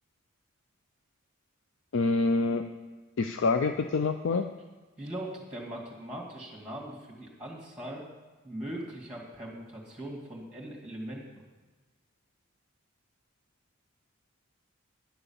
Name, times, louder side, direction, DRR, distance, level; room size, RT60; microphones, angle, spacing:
voice 1, 1.9-2.6 3.2-4.4, left 3 dB, 60° left, 7 dB, 0.5 m, -26 dB
voice 2, 5.0-8.0 8.4-11.4, right 1 dB, 5° right, -1 dB, 2.3 m, -40 dB
10.5 x 6.9 x 7.2 m, 1.3 s
head